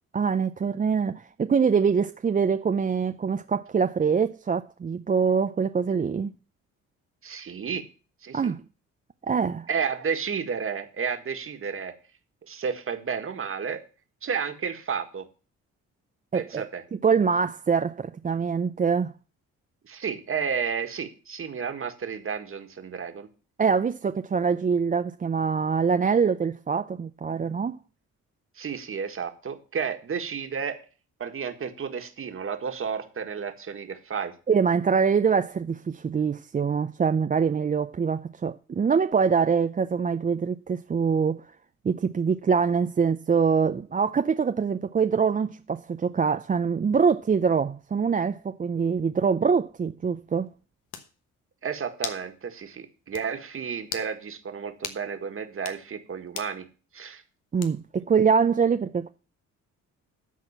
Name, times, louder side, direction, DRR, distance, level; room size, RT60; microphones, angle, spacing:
voice 1, 0.1-6.3 8.3-8.6 9.3-9.7 16.3-16.6 16.9-19.1 23.6-27.8 34.5-41.4 41.8-50.5 57.5-59.1, right 6 dB, 25° right, 0.5 m, -24 dB
voice 2, 7.2-7.8 8.2-8.5 9.7-11.9 12.5-13.8 14.2-15.3 16.3-16.8 19.8-23.3 28.6-30.8 31.2-34.3 51.6-56.7 56.9-57.2, right 6 dB, 45° right, 1.8 m, -32 dB
sound 1, 50.5-50.6 50.9-51.1 52.0-52.3 52.6-52.7 53.1-53.3 53.8-54.1 54.8-55.0 55.5-55.8 56.3-56.6 57.6-58.0, left 8 dB, 90° left, 1.3 m, -37 dB
12.5 x 4.3 x 7.3 m
cardioid pair, 90°, 30 cm